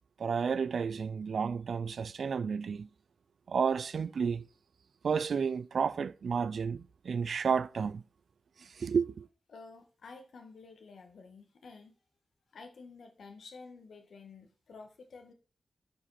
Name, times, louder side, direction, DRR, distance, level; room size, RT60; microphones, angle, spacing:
voice 1, 0.2-2.9 3.5-4.5 5.0-8.0 8.6-9.3, right 6 dB, 65° right, 0.3 m, -31 dB
voice 2, 9.5-11.9 12.5-15.3, left 4 dB, 70° left, 1.7 m, -51 dB
11.5 x 5.2 x 4.2 m
wide cardioid pair, 145°, 0 cm